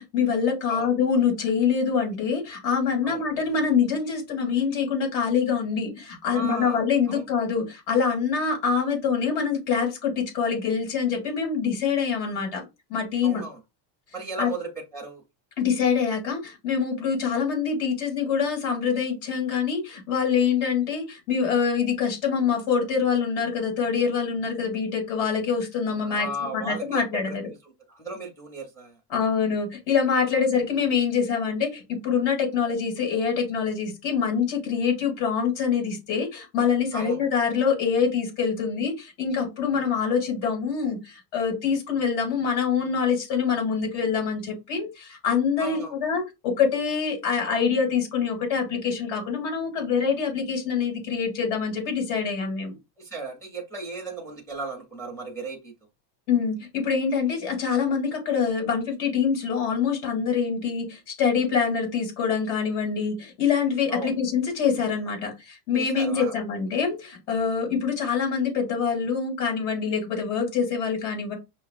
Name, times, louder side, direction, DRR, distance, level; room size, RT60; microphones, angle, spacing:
voice 1, 0.0-12.6 12.9-13.4 14.4-14.5 15.6-27.4 29.1-52.8 56.3-71.3, left 6 dB, 70° left, 2.6 m, -25 dB
voice 2, 6.3-6.8 7.1-7.2 13.2-13.6 14.1-15.2 26.0-29.0 30.3-30.4 36.9-37.2 45.6-45.9 53.0-55.7 63.9-64.2 65.7-66.4, right 2 dB, 5° left, 0.5 m, -35 dB
5.8 x 2.4 x 2.4 m
cardioid pair, 165°, 49 cm